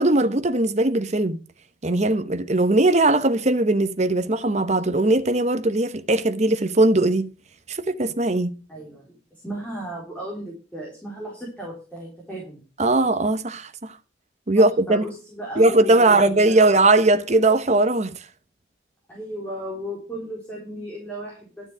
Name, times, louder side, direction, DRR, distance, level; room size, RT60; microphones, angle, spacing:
voice 1, 0.0-1.4 1.8-7.3 7.7-8.6 12.8-14.0 14.5-15.0 15.6-18.2, right 2 dB, 40° right, 1.0 m, -19 dB
voice 2, 8.7-12.6 14.5-16.7 19.1-21.7, right 1 dB, 10° left, 4.2 m, -35 dB
12.5 x 7.2 x 6.2 m
head